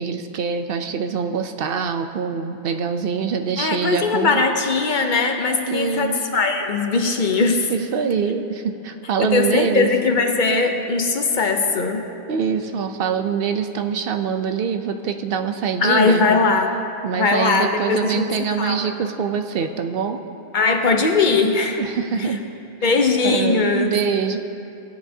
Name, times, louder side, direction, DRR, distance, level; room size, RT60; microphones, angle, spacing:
voice 1, 0.0-4.4 5.7-6.2 7.7-9.9 12.3-16.2 17.0-20.2 21.8-22.4 22.8-22.9 23.2-24.4, right 6 dB, 65° right, 7 dB, 0.7 m, -24 dB
voice 2, 3.6-7.7 9.2-12.1 15.8-16.8 17.1-18.3 18.6-18.9 20.5-21.8 22.2-22.3 22.8-23.9, left 4 dB, 55° left, 5 dB, 0.8 m, -20 dB
16.5 x 9.6 x 2.7 m, 2.7 s
omnidirectional pair, 1.1 m